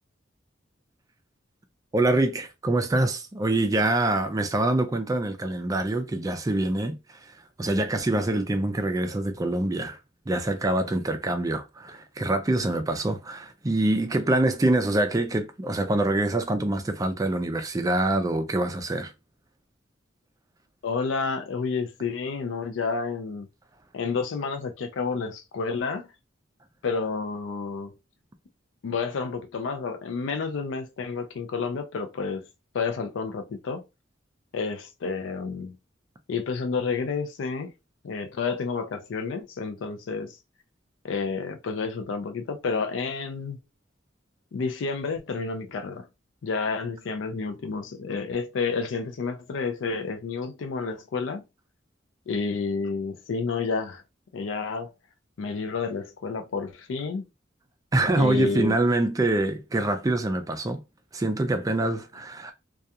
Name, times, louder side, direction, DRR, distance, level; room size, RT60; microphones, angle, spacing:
voice 1, 1.9-7.3 7.6-10.0 10.3-19.1 57.9-60.8 61.1-62.5, right 2 dB, 20° right, 0.4 m, -25 dB
voice 2, 20.8-23.5 23.9-26.1 26.8-27.9 28.8-32.4 32.7-33.8 34.5-35.7 36.3-37.7 38.0-40.4 41.0-43.6 44.5-46.1 46.4-51.4 52.3-54.0 54.3-54.9 55.4-57.3 58.2-58.8, left 4 dB, 90° left, 0.4 m, -30 dB
2.3 x 2.3 x 2.7 m
head